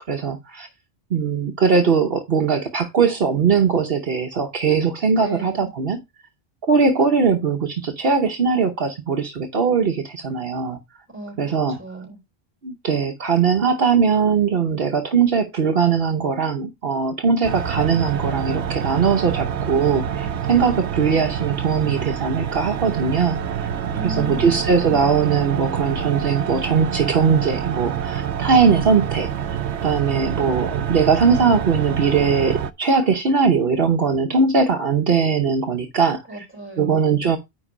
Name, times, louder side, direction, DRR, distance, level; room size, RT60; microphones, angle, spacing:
voice 1, 0.1-0.7 1.1-6.0 6.6-10.8 11.4-11.8 12.6-23.7 24.0-29.6 29.8-36.4 36.8-37.4, right 5 dB, 65° right, 1.1 m, -20 dB
voice 2, 5.2-5.7 11.1-12.2 23.9-25.2 36.3-37.0, right 1 dB, 10° right, 3.9 m, -36 dB
sound 1, 17.4-32.7, right 8 dB, 90° right, 1.0 m, -27 dB
9.7 x 4.0 x 4.9 m
omnidirectional pair, 1.1 m